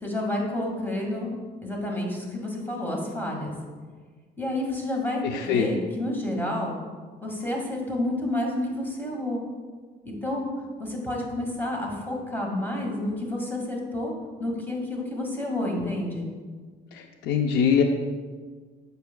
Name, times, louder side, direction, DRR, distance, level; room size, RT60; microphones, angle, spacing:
voice 1, 0.0-1.3 1.6-3.5 4.4-6.8 7.2-9.4 10.1-10.5 10.8-14.1 14.4-16.3, left 1 dB, 10° left, -1 dB, 1.9 m, -29 dB
voice 2, 5.3-5.7 17.3-17.8, left 7 dB, 85° left, 4 dB, 0.6 m, -21 dB
9.3 x 6.6 x 2.3 m, 1.5 s
cardioid pair, 110°, 17 cm